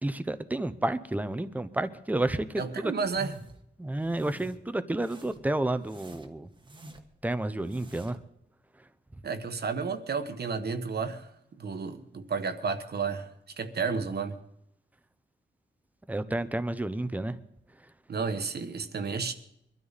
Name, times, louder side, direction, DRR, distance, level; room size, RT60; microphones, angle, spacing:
voice 1, 0.0-2.9 3.8-6.5 7.2-8.2 16.1-17.4, right 1 dB, 10° right, 0.7 m, -30 dB
voice 2, 2.6-3.3 9.2-13.3 13.6-14.4 18.1-19.3, right 5 dB, 55° right, 1.3 m, -32 dB
sound 1, 3.0-3.6 4.0-4.6 5.0-5.5 5.8-7.2 7.6-8.3, right 2 dB, 25° right, 1.3 m, -47 dB
23.5 x 12.5 x 4.1 m
wide cardioid pair, 160°, 20 cm